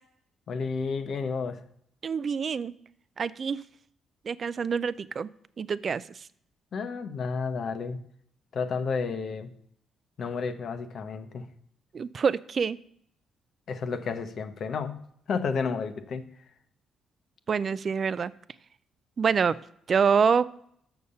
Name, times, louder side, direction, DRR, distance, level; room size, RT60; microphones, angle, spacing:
voice 1, 0.5-1.6 6.7-8.0 8.5-9.5 10.2-11.5 13.7-15.0 15.3-16.3, left 5 dB, 60° left, 9 dB, 0.8 m, -31 dB
voice 2, 2.0-2.7 3.2-3.6 4.3-5.3 5.6-6.0 11.9-12.8 17.5-18.3 19.2-19.6 19.9-20.5, right 6 dB, 45° right, 17 dB, 0.4 m, -26 dB
6.9 x 6.5 x 5.5 m, 0.67 s
cardioid pair, 90°, 0 cm